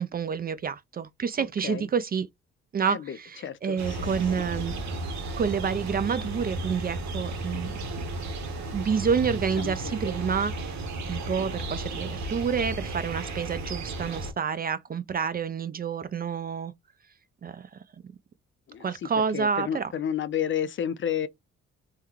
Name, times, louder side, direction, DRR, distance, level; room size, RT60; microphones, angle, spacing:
voice 1, 0.0-2.3 2.7-4.7 5.4-7.7 8.7-10.7 11.1-16.7 17.4-17.7 18.8-19.9, right 6 dB, 30° right, 0.4 m, -28 dB
voice 2, 1.4-1.9 2.8-4.1 9.6-10.0 18.7-21.3, left 9 dB, 40° left, 0.4 m, -32 dB
sound 1, 3.8-14.3, right 2 dB, 65° right, 1.0 m, -34 dB
3.5 x 2.2 x 3.0 m
cardioid pair, 90°, 30 cm